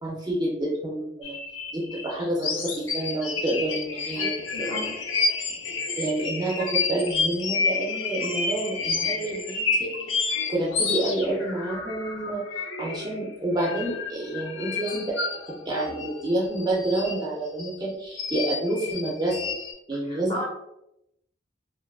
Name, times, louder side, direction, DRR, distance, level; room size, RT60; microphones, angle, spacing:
voice 1, 0.0-1.4 1.7-4.9 6.0-9.9 10.5-15.2 15.5-19.5 19.9-20.5, right 1 dB, 20° right, -4 dB, 0.4 m, -29 dB
sound 1, 1.2-13.3 13.5-17.7 18.1-19.7, left 4 dB, 90° left, 0.5 m, -30 dB
voice 2, 4.2-4.9 20.1-20.5, equal, 25° left, -3 dB, 0.6 m, -35 dB
2.5 x 2.3 x 2.3 m, 0.83 s
head